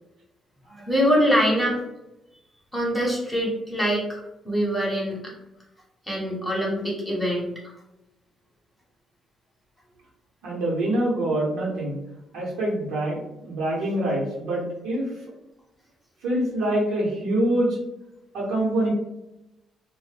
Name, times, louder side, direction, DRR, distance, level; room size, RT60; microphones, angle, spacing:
voice 1, 0.7-1.8 2.7-5.3 6.1-7.5, equal, 10° left, -3 dB, 0.9 m, -24 dB
voice 2, 10.4-12.0 12.3-15.1 16.2-17.8 18.3-18.9, right 1 dB, 90° right, -4 dB, 0.9 m, -25 dB
2.2 x 2.0 x 3.2 m, 0.90 s
cardioid pair, 90°, 0 cm